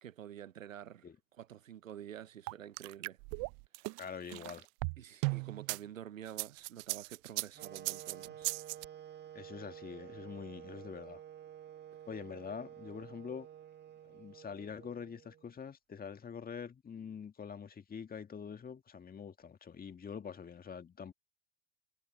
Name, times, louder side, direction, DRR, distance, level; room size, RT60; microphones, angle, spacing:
voice 1, 0.0-3.2 3.8-4.0 5.0-8.5, right 10 dB, 90° right, 0.9 m, -49 dB
sound 1, 2.5-5.8 6.3-8.8, right 33 dB, 50° right, 0.6 m, -37 dB
voice 2, 4.0-4.7 9.3-11.2 12.1-13.5 14.0-21.1, left 6 dB, 25° left, 1.8 m, -45 dB
sound 2, 7.5-15.6, right 10 dB, 25° right, 1.7 m, -51 dB
hypercardioid pair, 80°, 38 cm